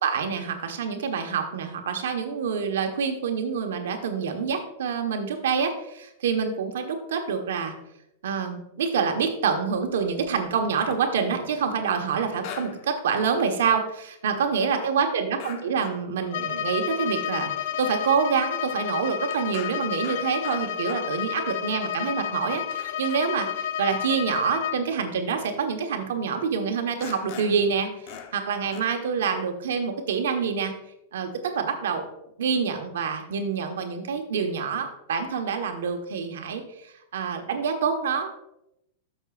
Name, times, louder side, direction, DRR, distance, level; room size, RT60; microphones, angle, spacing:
voice 1, 0.0-7.7 8.2-30.7 31.1-32.1 32.4-38.3, right 6 dB, 85° right, 4 dB, 1.3 m, -27 dB
sound 1, 10.6-11.8 12.4-12.9 13.2-13.3 15.4-16.1 16.4-16.5 17.0-17.3 17.9-18.0 18.2-18.4 18.7-21.3 21.9-22.0 22.4-22.5 22.7-23.6 24.3-24.5 25.4-25.5 26.4-26.5 27.0-27.7 28.1-28.5 28.7-28.8, left 7 dB, 45° left, 0.8 m, -42 dB
Bowed string instrument, 16.3-24.9, left 9 dB, 65° left, 0.5 m, -31 dB
13.0 x 6.4 x 2.5 m, 0.83 s
supercardioid pair, 155°, 0 cm